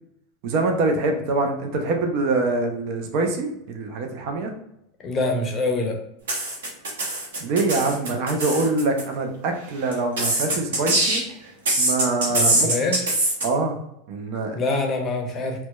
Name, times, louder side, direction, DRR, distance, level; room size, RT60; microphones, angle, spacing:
voice 1, 0.4-4.5 7.4-11.2 11.8-12.7 13.4-13.8 14.1-14.6, right 3 dB, 60° right, 4 dB, 0.5 m, -24 dB
voice 2, 5.0-6.0 12.3-13.0 14.5-15.7, left 2 dB, 30° left, 2 dB, 0.6 m, -25 dB
sound 1, 6.3-9.0 9.9-11.3 11.7-13.4, right 1 dB, 85° right, 0.8 m, -22 dB
2.7 x 2.1 x 2.2 m, 0.78 s
hypercardioid pair, 105°, 0 cm